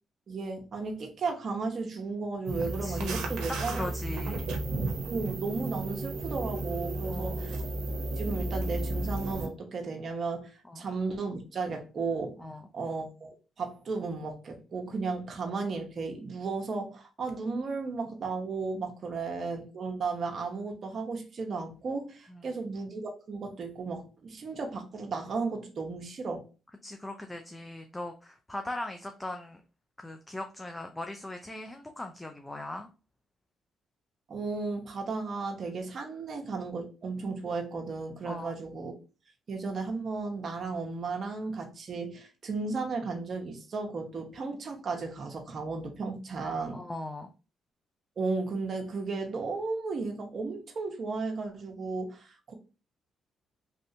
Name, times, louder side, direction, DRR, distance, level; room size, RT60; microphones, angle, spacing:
voice 1, 0.3-3.8 4.2-4.4 5.1-7.6 8.2-12.4 12.7-26.5 34.3-38.9 39.5-46.8 48.2-52.5, right 4 dB, 50° right, 0.9 m, -34 dB
sound 1, 2.5-9.5, right 2 dB, 80° right, 0.8 m, -33 dB
voice 2, 2.8-4.5 7.1-7.5 10.7-10.8 12.4-12.6 22.3-22.5 26.8-29.6 30.0-32.9 38.2-38.5 46.7-47.3, left 1 dB, 15° left, 0.4 m, -39 dB
3.2 x 2.7 x 2.7 m
cardioid pair, 90°, 0 cm